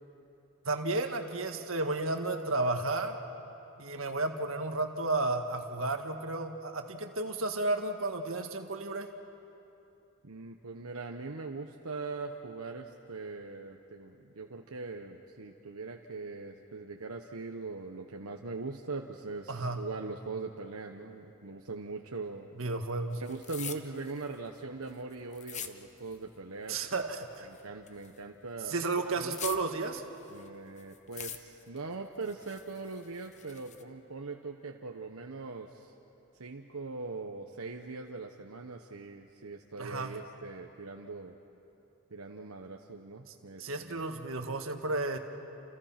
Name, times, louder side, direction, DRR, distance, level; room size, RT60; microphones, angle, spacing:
voice 1, 0.7-3.2 3.8-9.1 19.5-19.8 22.6-23.2 26.7-27.5 28.7-30.0 39.8-40.2 43.6-45.2, right 2 dB, 70° right, 5 dB, 1.8 m, -32 dB
voice 2, 10.2-22.5 23.2-26.8 27.4-29.4 30.3-35.9 36.4-41.3 42.1-44.0, right 3 dB, 85° right, 2 dB, 1.1 m, -41 dB
sound 1, 23.1-26.4 26.6-28.3 28.6-30.5 30.8-31.8 32.2-33.8, left 8 dB, 35° left, 1.0 m, -44 dB
29.5 x 29.0 x 6.0 m, 2.9 s
head